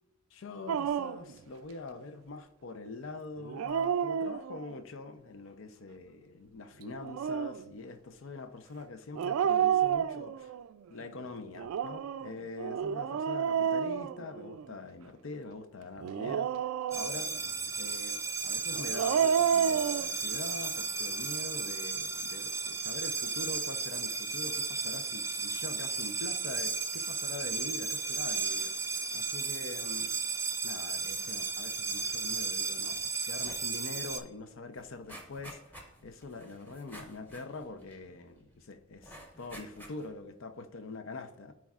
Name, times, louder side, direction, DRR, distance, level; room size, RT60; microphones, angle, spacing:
voice 1, 0.3-10.6 10.9-17.3 17.8-28.7 29.1-30.1 30.6-41.5, left 3 dB, 65° left, 0.6 m, -44 dB
Dog, 0.7-1.3 3.4-4.8 6.9-7.6 9.2-10.6 11.6-14.7 16.0-17.4 18.7-20.1, right 8 dB, 90° right, 0.3 m, -30 dB
sound 1, 16.9-34.2, right 4 dB, 15° right, 0.4 m, -34 dB
sound 2, 32.9-33.1 33.4-33.7 34.1-34.2 34.5-38.4 39.0-40.2 40.7-40.8, right 1 dB, 10° left, 1.2 m, -51 dB
13.0 x 4.7 x 2.4 m
head